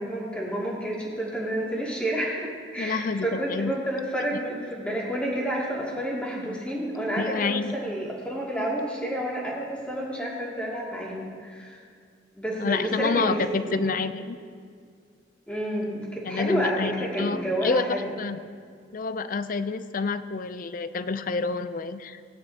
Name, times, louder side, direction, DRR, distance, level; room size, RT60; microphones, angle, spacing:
voice 1, 0.0-11.8 12.4-13.9 15.5-18.2, right 1 dB, 5° left, -6 dB, 2.6 m, -30 dB
voice 2, 2.8-3.7 7.1-7.7 12.6-14.4 16.3-17.9 18.2-18.4 18.9-22.2, left 4 dB, 45° left, 12 dB, 0.5 m, -28 dB
17.5 x 10.0 x 2.9 m, 2.2 s
head